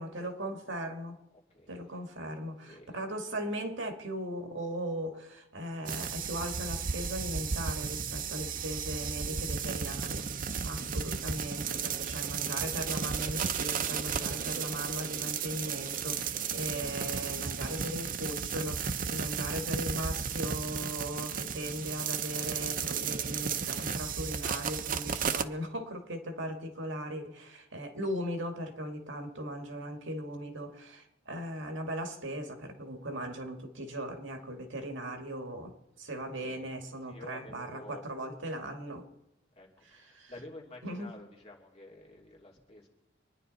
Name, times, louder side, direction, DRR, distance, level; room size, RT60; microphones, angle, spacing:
voice 1, 0.0-1.2 1.7-10.3 10.6-39.0 39.8-40.3 40.8-41.1, equal, 75° right, 5 dB, 2.0 m, -38 dB
voice 2, 1.3-1.7 2.6-3.0 16.4-17.2 36.4-36.7 37.0-38.0 39.5-42.9, left 1 dB, 35° left, -1 dB, 3.0 m, -51 dB
sound 1, 5.9-25.5, right 6 dB, 45° right, 0.6 m, -34 dB
25.0 x 10.0 x 4.1 m, 0.94 s
head